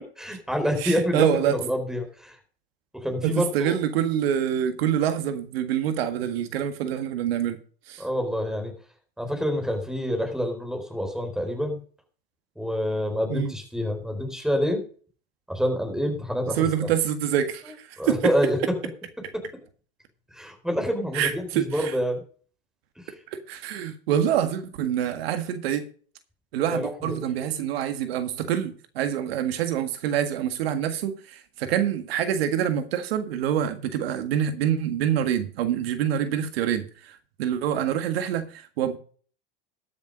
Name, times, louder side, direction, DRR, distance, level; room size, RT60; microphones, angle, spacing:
voice 1, 0.2-2.4 2.9-3.8 8.0-8.7 9.2-11.8 12.6-14.8 15.5-16.7 18.0-18.6 19.3-19.4 20.3-22.2 23.0-23.1 26.7-27.2, equal, ahead, 4.3 m, -27 dB
voice 2, 0.8-1.6 3.2-7.6 7.9-8.0 13.3-13.5 16.6-17.8 18.0-18.2 21.1-21.9 23.3-25.8 26.5-39.0, right 9 dB, 80° right, 1.8 m, -26 dB
13.0 x 7.1 x 5.2 m
supercardioid pair, 120°, 30 cm